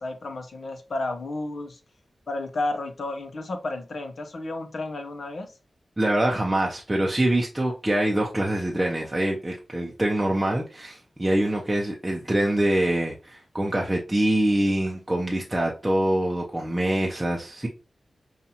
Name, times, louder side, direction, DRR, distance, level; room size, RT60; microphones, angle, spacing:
voice 1, 0.0-1.8 2.3-5.5, left 2 dB, 65° left, 0.7 m, -32 dB
voice 2, 6.0-17.7, right 1 dB, 15° right, 0.6 m, -24 dB
5.3 x 2.4 x 2.8 m
wide cardioid pair, 85°, 0 cm